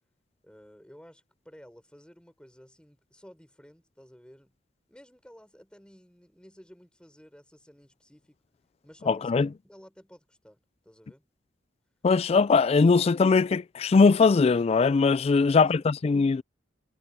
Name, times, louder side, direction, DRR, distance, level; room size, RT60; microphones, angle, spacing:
voice 1, 0.4-4.6 4.9-8.4 8.8-11.2 15.3-16.1, equal, 5° left, 4.5 m, -54 dB
voice 2, 9.1-9.5 12.0-16.4, left 4 dB, 35° left, 0.3 m, -21 dB
head